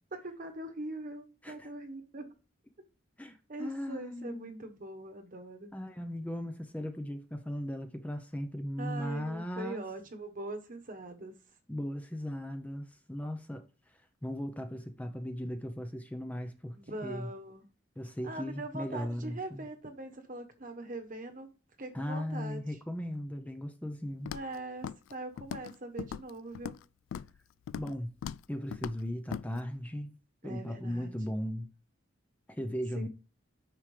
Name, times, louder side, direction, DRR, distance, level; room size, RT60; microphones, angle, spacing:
voice 1, 0.1-2.3 3.5-5.7 8.8-11.4 16.7-17.6 18.2-21.5 21.8-22.8 24.3-26.8 30.4-31.1 32.9-33.1, right 2 dB, 45° right, 1.2 m, -42 dB
voice 2, 3.2-4.7 5.7-9.8 11.7-13.7 14.2-16.8 17.0-17.3 18.0-19.7 21.9-24.3 27.8-28.1 28.5-30.1 30.4-31.7 32.5-33.1, equal, 10° left, 0.6 m, -37 dB
Walk footsteps, 24.3-24.6 24.8-25.1 25.4-25.7 26.0-26.8 27.1-27.4 27.7-28.0 28.2-28.4 28.7-29.0 29.3-29.4, left 8 dB, 85° left, 0.3 m, -39 dB
9.2 x 6.1 x 3.3 m
head